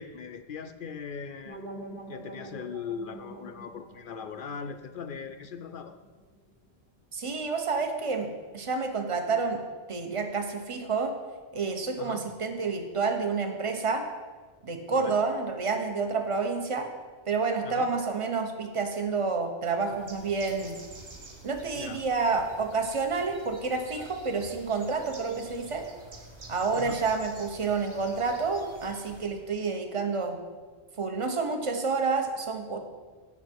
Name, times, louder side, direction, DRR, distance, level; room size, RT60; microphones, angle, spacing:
voice 1, 0.0-1.6 2.1-6.0 12.0-12.2 14.9-15.2 17.6-17.9 21.8-22.0 26.7-27.0, left 6 dB, 60° left, 8 dB, 0.6 m, -39 dB
sound 1, 1.5-6.4, right 1 dB, 50° right, 1.8 m, -46 dB
voice 2, 7.1-9.6 9.9-11.2 11.5-14.1 14.6-16.9 17.3-20.8 21.4-25.8 26.5-30.4 31.0-32.8, right 4 dB, 30° right, 5 dB, 1.0 m, -29 dB
Bird, 19.8-29.4, right 2 dB, 75° right, 1.7 m, -48 dB
16.5 x 5.8 x 4.5 m, 1.4 s
omnidirectional pair, 1.1 m